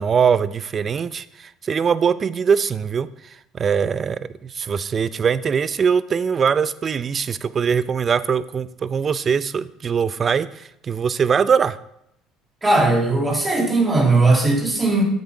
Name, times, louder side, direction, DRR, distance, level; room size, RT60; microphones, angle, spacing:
voice 1, 0.0-11.8, right 6 dB, 40° right, 16 dB, 0.5 m, -22 dB
voice 2, 12.6-15.0, right 2 dB, 20° right, -1 dB, 2.7 m, -18 dB
8.1 x 6.8 x 4.8 m, 0.77 s
hypercardioid pair, 70°, 0 cm